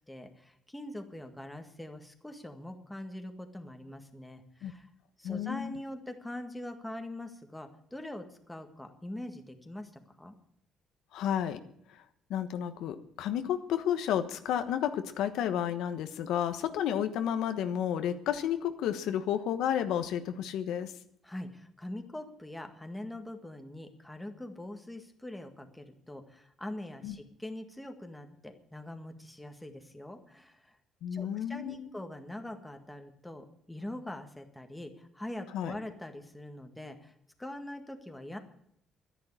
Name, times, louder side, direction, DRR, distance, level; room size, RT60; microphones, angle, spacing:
voice 1, 0.1-4.9 5.2-9.9 10.2-10.4 21.2-30.8 31.1-38.4, left 1 dB, 5° left, 5 dB, 1.8 m, -43 dB
voice 2, 5.2-5.7 11.1-11.6 12.3-20.9 27.0-27.1 31.0-31.9 35.5-35.8, left 9 dB, 80° left, 8 dB, 1.2 m, -31 dB
12.0 x 10.5 x 9.8 m, 0.70 s
cardioid pair, 120°, 0 cm